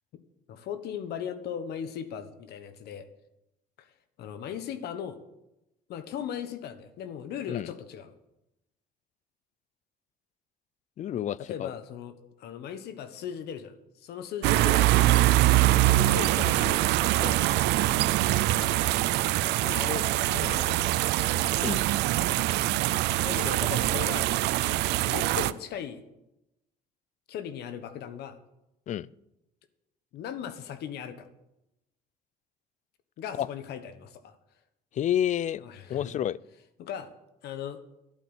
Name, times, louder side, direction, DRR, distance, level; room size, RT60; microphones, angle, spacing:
voice 1, 0.5-3.1 3.8-3.9 4.2-5.2 5.9-8.1 11.4-15.0 15.9-16.8 17.2-17.4 18.3-19.0 19.6-21.1 23.2-24.4 25.0-26.0 27.3-28.4 30.1-31.3 33.2-34.4 35.6-36.2 36.8-37.1 37.4-37.8, left 8 dB, 75° left, 1.4 m, -38 dB
voice 2, 11.0-11.7 21.6-21.8 28.9-29.1 33.4-33.5 34.9-35.6 35.9-36.4, left 10 dB, 45° left, 0.4 m, -29 dB
sound 1, 14.4-25.5, right 16 dB, 85° right, 0.5 m, -24 dB
11.5 x 8.7 x 8.1 m
cardioid pair, 110°, 17 cm